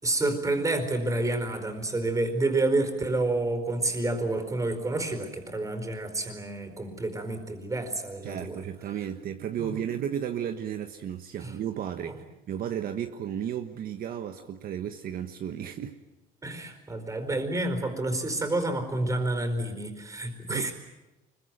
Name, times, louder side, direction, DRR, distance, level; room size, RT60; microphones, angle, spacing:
voice 1, 0.0-8.6 9.6-9.8 11.4-11.5 12.0-12.2 16.4-20.7, right 2 dB, 20° right, 7 dB, 4.6 m, -29 dB
voice 2, 8.2-16.0 20.5-20.7, right 9 dB, 60° right, 6 dB, 1.3 m, -34 dB
24.5 x 22.5 x 9.3 m, 1.0 s
cardioid pair, 110°, 17 cm